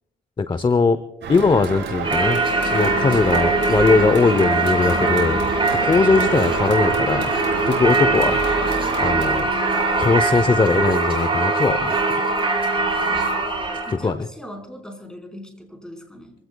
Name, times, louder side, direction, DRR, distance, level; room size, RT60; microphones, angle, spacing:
voice 1, 0.4-1.0 1.3-5.4 5.8-7.3 7.7-8.4 9.0-9.5 10.0-11.9 13.9-14.3, left 4 dB, 25° left, 12 dB, 0.8 m, -20 dB
sound 1, 1.2-9.4, right 5 dB, 60° right, 4.0 m, -29 dB
Singing / Church bell, 2.0-14.0, right 3 dB, 25° right, 4.6 m, -21 dB
voice 2, 13.9-16.3, equal, 5° left, 3 dB, 4.6 m, -39 dB
26.0 x 16.0 x 2.3 m, 0.91 s
cardioid pair, 90°, 20 cm